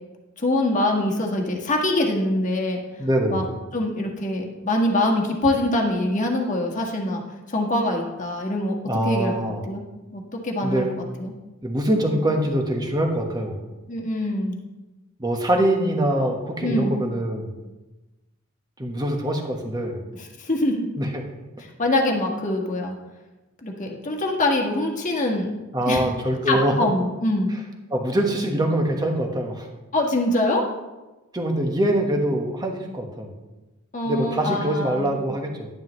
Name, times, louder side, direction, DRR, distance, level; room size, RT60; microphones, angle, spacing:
voice 1, 0.4-2.8 3.3-3.4 3.7-7.2 7.5-8.8 9.0-9.3 9.7-9.8 10.1-10.8 11.2-11.3 13.9-14.6 16.6-17.0 20.2-20.9 21.6-22.9 23.6-25.5 25.9-26.0 26.5-27.5 29.9-30.6 33.9-35.2, left 1 dB, 35° left, 1 dB, 1.5 m, -24 dB
voice 2, 3.0-3.5 8.9-9.6 10.6-10.9 11.6-13.6 15.2-17.6 18.8-20.0 21.0-21.2 25.7-26.7 27.9-29.7 31.3-33.3 34.0-35.7, right 1 dB, 20° right, 2 dB, 1.3 m, -24 dB
11.0 x 10.5 x 3.1 m, 1.1 s
head